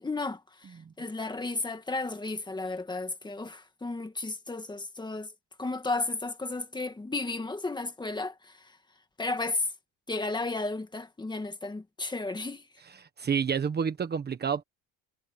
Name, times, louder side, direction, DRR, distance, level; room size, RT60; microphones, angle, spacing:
voice 1, 0.0-5.3 5.6-8.5 9.2-9.7 10.1-12.6, left 3 dB, 10° left, 1.7 m, -33 dB
voice 2, 13.0-14.6, right 7 dB, 25° right, 1.3 m, -29 dB
cardioid pair, 165°, 37 cm